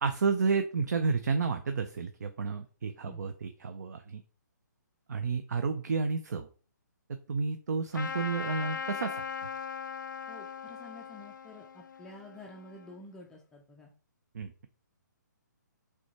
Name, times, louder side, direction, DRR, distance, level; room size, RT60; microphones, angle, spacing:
voice 1, 0.0-4.2 5.1-6.5 7.3-9.2 14.3-14.7, right 4 dB, 60° right, 8 dB, 0.4 m, -31 dB
Trumpet, 7.9-13.0, left 6 dB, 75° left, 0.5 m, -39 dB
voice 2, 10.3-13.9, left 2 dB, 5° left, -1 dB, 0.4 m, -50 dB
6.0 x 2.2 x 2.8 m, 0.38 s
figure-of-eight pair, 140°, 10 cm